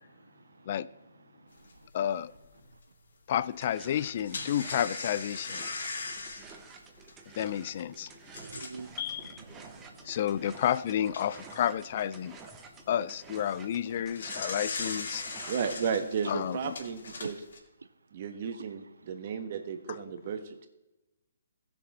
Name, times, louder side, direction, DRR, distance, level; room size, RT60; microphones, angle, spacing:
voice 1, 0.2-0.7 1.3-1.9 8.3-10.1, right 4 dB, 80° right, 0.5 m, -49 dB
sound 1, 1.7-1.8 2.3-2.4 3.9-8.9 9.5-9.6 10.0-10.1 10.8-11.6 13.8-17.6, left 3 dB, 65° left, 2.7 m, -39 dB
voice 2, 1.9-2.3 3.3-5.7 7.3-8.1 9.0-9.4 10.0-12.4 12.9-15.2 16.3-16.8, left 10 dB, 45° left, 0.4 m, -31 dB
sound 2, 3.5-15.5, right 5 dB, 15° right, 1.1 m, -51 dB
voice 3, 15.5-17.4 18.1-20.7, right 6 dB, 45° right, 1.4 m, -34 dB
15.5 x 6.9 x 4.2 m
figure-of-eight pair, 140°, 0 cm